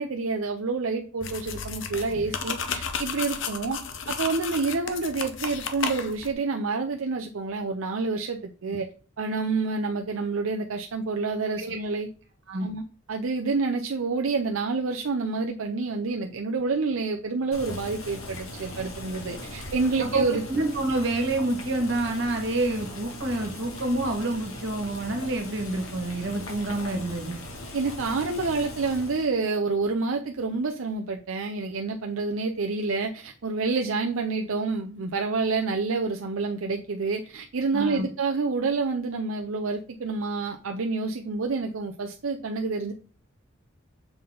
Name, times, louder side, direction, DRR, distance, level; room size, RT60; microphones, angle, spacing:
voice 1, 0.0-3.8 4.1-8.9 9.2-12.1 12.6-12.8 13.1-20.4 27.7-42.9, right 4 dB, 80° right, 3 dB, 0.6 m, -28 dB
sound 1, 1.2-6.3, left 6 dB, 60° left, 0.7 m, -33 dB
Boiling, 17.5-29.3, left 1 dB, 85° left, 1.9 m, -39 dB
voice 2, 20.0-27.4 37.7-38.1, right 2 dB, 60° right, 3 dB, 1.6 m, -28 dB
7.0 x 3.9 x 3.8 m, 0.37 s
head